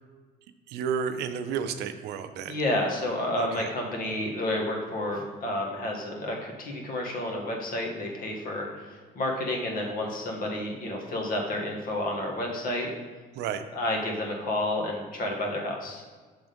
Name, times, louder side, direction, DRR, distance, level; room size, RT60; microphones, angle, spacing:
voice 1, 0.7-2.6 3.4-3.7 13.4-13.6, right 7 dB, 80° right, 9 dB, 0.5 m, -31 dB
voice 2, 2.5-12.9 13.7-16.0, left 1 dB, 55° left, 0 dB, 1.4 m, -30 dB
6.0 x 3.6 x 5.1 m, 1.4 s
cardioid pair, 110°, 17 cm